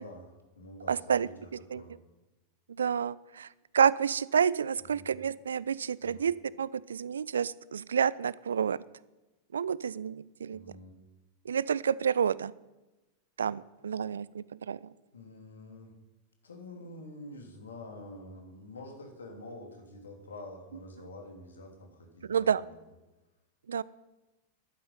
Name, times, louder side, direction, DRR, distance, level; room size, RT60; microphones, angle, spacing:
voice 1, 0.0-1.9 4.9-5.1 6.0-6.3 10.5-10.9 15.1-16.0 16.4-22.8, left 1 dB, 70° left, 3 dB, 3.1 m, -47 dB
voice 2, 0.9-1.3 1.7-1.8 2.8-3.5 3.7-8.8 9.5-10.6 11.5-12.5 13.4-14.9 22.3-22.6 23.7-23.8, right 7 dB, 70° right, 21 dB, 0.4 m, -29 dB
12.0 x 9.7 x 9.5 m, 1.1 s
figure-of-eight pair, 90°, 0 cm